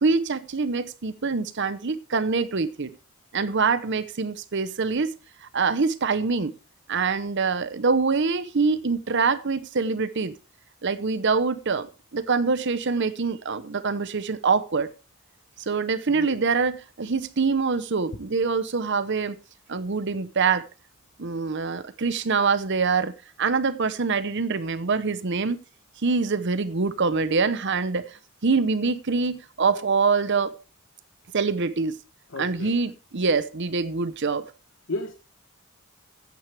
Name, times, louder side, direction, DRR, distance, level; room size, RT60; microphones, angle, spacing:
voice 1, 0.0-2.9 3.3-5.1 5.4-6.5 6.9-10.3 10.8-11.9 12.1-14.9 15.6-19.4 19.7-20.6 21.2-25.6 26.0-28.0 28.4-30.5 31.3-32.0 32.4-34.4, right 4 dB, 55° right, 0.8 m, -24 dB
voice 2, 16.1-16.4 32.3-32.9 34.9-35.1, left 2 dB, 60° left, 1.1 m, -34 dB
14.5 x 9.1 x 3.4 m
head